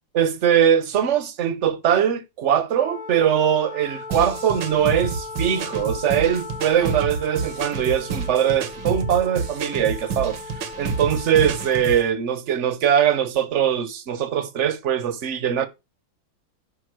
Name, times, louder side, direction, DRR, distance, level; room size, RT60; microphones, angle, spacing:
voice 1, 0.1-15.7, right 9 dB, 45° right, 1.1 m, -21 dB
Wind instrument woodwind instrument, 2.7-11.9, left 4 dB, 50° left, 0.4 m, -38 dB
sound 1, 4.1-12.1, right 4 dB, 75° right, 1.9 m, -29 dB
10.0 x 5.6 x 6.1 m
omnidirectional pair, 2.1 m